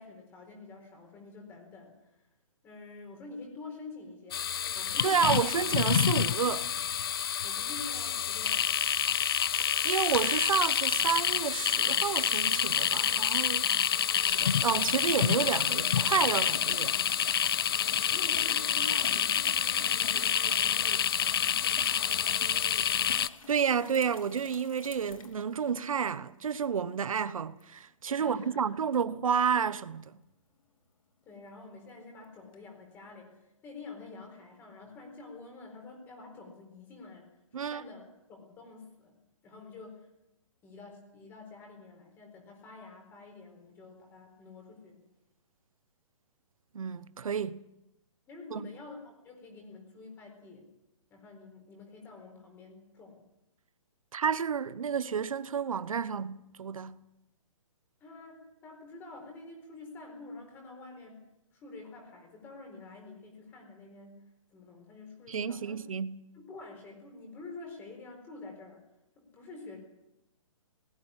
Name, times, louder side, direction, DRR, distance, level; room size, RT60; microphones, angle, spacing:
voice 1, 0.0-2.3 2.6-5.4 7.4-9.2 17.8-21.1 21.4-23.2 28.2-28.6 31.2-37.3 37.5-38.0 38.3-39.1 39.4-40.1 40.6-45.0 48.2-50.7 51.1-53.2 58.0-61.2 61.5-64.2 64.5-65.8 66.3-68.8 69.2-69.8, left 3 dB, 15° left, 4.3 m, -48 dB
sound 1, 4.3-23.3, left 9 dB, 45° left, 0.7 m, -28 dB
voice 2, 5.0-6.7 9.6-13.7 14.2-16.9 23.5-30.1 37.5-37.8 46.7-47.6 48.5-48.7 54.1-57.0 65.3-66.2, right 7 dB, 85° right, 1.1 m, -30 dB
sound 2, 14.2-26.1 27.6-27.7 32.5-32.6, left 5 dB, 85° left, 3.1 m, -48 dB
19.5 x 14.5 x 9.8 m
hypercardioid pair, 170°, 17 cm